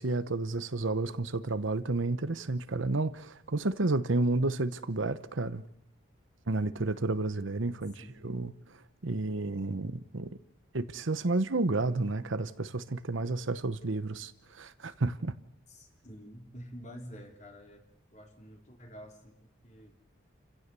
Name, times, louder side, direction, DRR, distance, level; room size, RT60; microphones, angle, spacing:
voice 1, 0.0-5.6 6.5-8.5 9.0-10.3 10.7-15.3, right 2 dB, 75° right, 1.0 m, -31 dB
voice 2, 15.7-19.9, equal, 35° left, 3.4 m, -49 dB
29.0 x 16.0 x 6.9 m
head